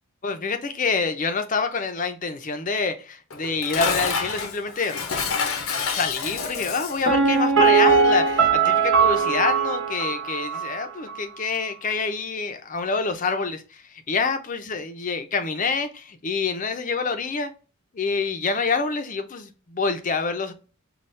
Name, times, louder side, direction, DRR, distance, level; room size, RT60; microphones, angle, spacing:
voice 1, 0.2-5.0 5.9-17.5 17.9-20.5, left 4 dB, 40° left, 0.5 m, -27 dB
Dishes pots and pans, 3.3-7.1, left 5 dB, 80° left, 0.7 m, -28 dB
Piano, 7.1-10.8 11.1-11.2, right 5 dB, 70° right, 1.1 m, -20 dB
5.5 x 2.3 x 3.2 m
head